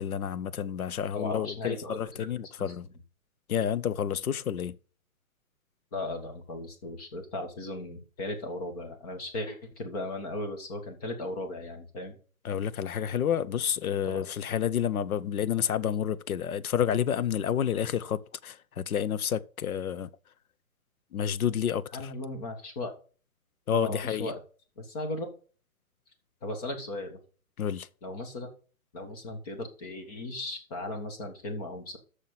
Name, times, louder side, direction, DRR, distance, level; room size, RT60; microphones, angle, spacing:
voice 1, 0.0-2.9 3.5-4.8 12.4-20.1 21.1-22.1 23.7-24.3 27.6-27.9, left 9 dB, 90° left, 0.8 m, -29 dB
voice 2, 1.1-2.3 2.6-2.9 5.9-12.2 14.1-14.2 21.9-22.9 23.7-24.4 24.8-25.3 26.4-27.2 28.0-28.5 28.9-32.0, left 2 dB, 25° left, 1.7 m, -37 dB
6.6 x 5.8 x 7.3 m
hypercardioid pair, 165°, 42 cm